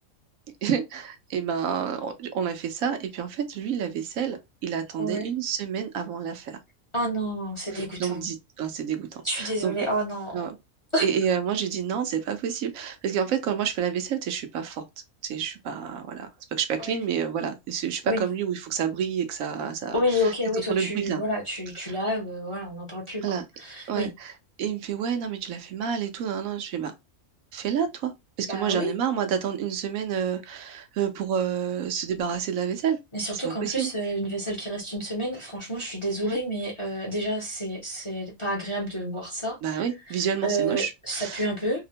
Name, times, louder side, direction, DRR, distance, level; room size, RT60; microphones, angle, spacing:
voice 1, 0.6-6.6 7.7-9.7 10.3-10.6 11.0-14.8 15.2-21.2 21.8-21.9 23.2-23.4 23.9-24.3 24.6-26.9 27.5-28.1 28.4-33.0 33.4-33.9 36.2-36.4 39.6-41.5, right 8 dB, 75° right, 1.0 m, -29 dB
voice 2, 5.0-5.3 6.9-8.2 9.2-10.4 10.9-11.0 16.8-17.0 18.1-18.2 19.9-24.1 28.5-28.9 33.1-41.9, equal, 30° left, 0.6 m, -29 dB
2.8 x 2.1 x 2.7 m
omnidirectional pair, 1.5 m